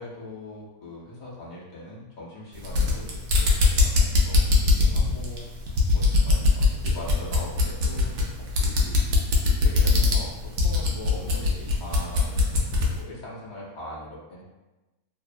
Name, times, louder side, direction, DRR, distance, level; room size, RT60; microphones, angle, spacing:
voice 1, 0.0-5.4 5.9-9.0 9.6-10.3 10.6-14.4, left 2 dB, 70° left, -6 dB, 0.4 m, -41 dB
sound 1, 2.5-13.0, left 3 dB, 85° right, 1.1 m, -22 dB
2.9 x 2.0 x 2.4 m, 1.1 s
omnidirectional pair, 1.7 m